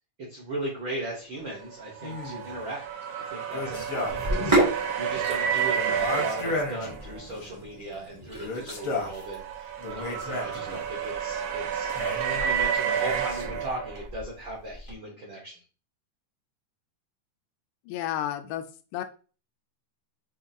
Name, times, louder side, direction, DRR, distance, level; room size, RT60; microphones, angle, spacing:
voice 1, 0.2-11.9 12.3-15.6, right 1 dB, 75° right, -4 dB, 1.1 m, -37 dB
sound 1, 1.7-7.4 8.7-14.1, right 8 dB, 90° right, 2.2 m, -30 dB
sound 2, 2.0-2.6 3.5-4.5 4.7-4.8 5.9-7.5 8.3-9.2 9.8-10.9 11.9-12.5 13.0-13.7, left 3 dB, 70° left, 1.2 m, -34 dB
Sink (filling or washing), 4.1-14.9, right 1 dB, 25° right, 0.6 m, -33 dB
voice 2, 17.9-18.7 18.9-19.0, left 11 dB, 90° left, 8 dB, 2.1 m, -31 dB
5.6 x 2.3 x 2.6 m, 0.37 s
omnidirectional pair, 3.6 m